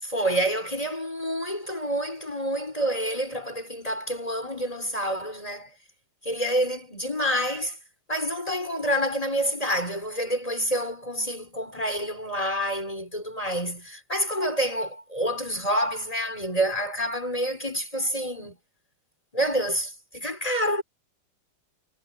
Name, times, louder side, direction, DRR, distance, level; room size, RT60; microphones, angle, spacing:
voice 1, 0.0-5.7 6.2-7.8 8.1-18.6 19.3-20.8, equal, 15° left, 5.1 m, -28 dB
omnidirectional pair, 2.1 m